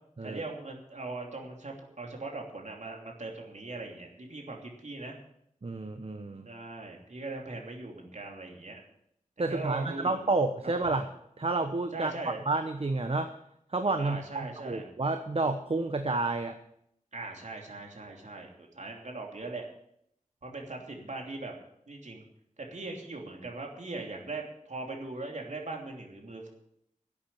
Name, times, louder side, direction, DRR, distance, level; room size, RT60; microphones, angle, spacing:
voice 1, 0.2-5.2 6.4-8.8 9.5-10.2 11.9-12.4 14.0-14.9 17.1-19.7 20.4-21.5 21.9-22.2 22.6-26.5, right 3 dB, 60° right, 1 dB, 3.0 m, -40 dB
voice 2, 5.6-6.5 9.4-11.1 11.4-12.1 12.4-13.3 13.7-16.6, right 3 dB, 45° right, 7 dB, 1.0 m, -30 dB
11.5 x 8.6 x 8.6 m, 0.74 s
wide cardioid pair, 70°, 14 cm